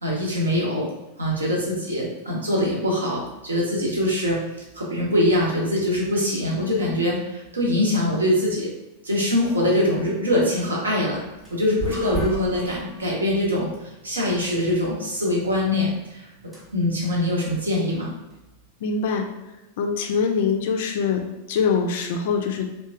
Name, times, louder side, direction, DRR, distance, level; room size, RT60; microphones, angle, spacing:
voice 1, 0.0-0.9 1.2-4.4 4.7-8.7 9.0-11.2 11.5-16.3 16.7-18.1, left 1 dB, 75° right, -3 dB, 0.7 m, -23 dB
sound 1, 11.1-18.7, right 3 dB, 15° right, 0.9 m, -38 dB
voice 2, 18.8-19.3 19.8-21.2 21.5-22.7, left 5 dB, 55° left, 4 dB, 0.3 m, -23 dB
2.9 x 2.2 x 2.4 m, 0.99 s
figure-of-eight pair, 90°, 0 cm